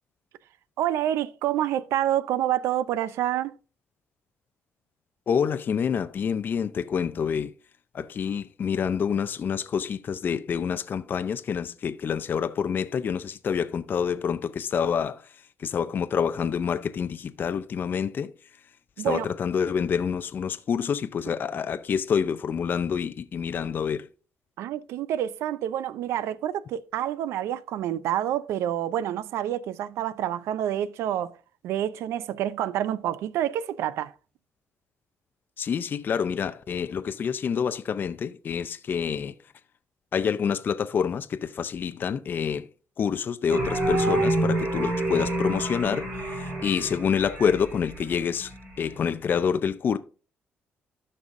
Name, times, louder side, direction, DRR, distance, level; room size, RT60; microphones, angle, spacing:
voice 1, 0.8-3.5 19.0-19.3 24.6-31.4 31.6-34.1, right 11 dB, 90° right, 0.5 m, -28 dB
voice 2, 5.3-7.5 7.9-15.2 15.6-18.3 19.0-24.1 35.6-39.3 40.1-42.7 43.0-50.0, left 7 dB, 50° left, 0.5 m, -27 dB
sound 1, 43.5-49.0, right 2 dB, 60° right, 3.7 m, -28 dB
13.0 x 5.4 x 2.6 m
cardioid pair, 100°, 4 cm